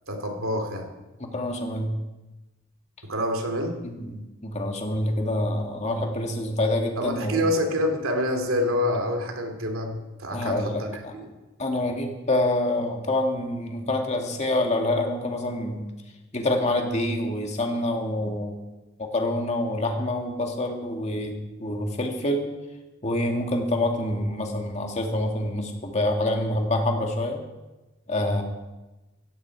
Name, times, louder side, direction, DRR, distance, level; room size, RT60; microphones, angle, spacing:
voice 1, 0.1-0.9 3.0-3.7 7.0-11.3, left 1 dB, 85° right, 4 dB, 2.7 m, -27 dB
voice 2, 1.2-2.0 3.8-7.5 10.3-11.1 11.6-15.9 16.3-18.6 19.0-22.5 23.0-27.4 28.1-28.4, left 1 dB, 35° left, 2 dB, 2.2 m, -26 dB
16.0 x 16.0 x 4.7 m, 1.1 s
head